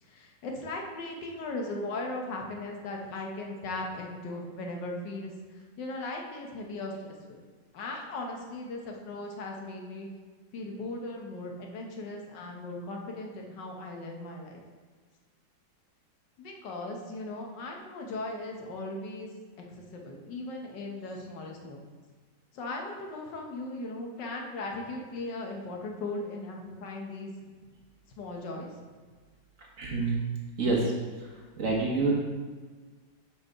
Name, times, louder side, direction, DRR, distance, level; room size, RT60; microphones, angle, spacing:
voice 1, 0.0-7.4 7.7-10.1 10.5-14.6 16.4-19.3 19.7-21.9 22.5-27.3 28.2-28.7, left 2 dB, 70° left, 1 dB, 1.5 m, -38 dB
voice 2, 29.8-30.2 30.6-30.9 31.2-31.3 31.6-32.1, right 3 dB, 50° right, -2 dB, 1.3 m, -27 dB
5.6 x 4.4 x 4.8 m, 1.5 s
omnidirectional pair, 2.0 m